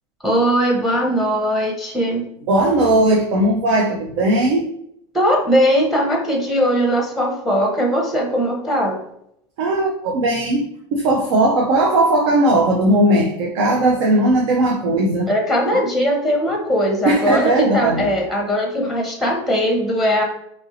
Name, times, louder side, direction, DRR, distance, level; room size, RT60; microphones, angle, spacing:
voice 1, 0.2-2.2 5.1-9.0 15.3-20.2, equal, ahead, 1 dB, 0.7 m, -19 dB
voice 2, 2.5-4.7 9.6-10.7 10.9-15.3 17.0-18.1, right 1 dB, 75° right, 0 dB, 0.6 m, -17 dB
2.9 x 2.6 x 2.7 m, 0.73 s
supercardioid pair, 110°, 15 cm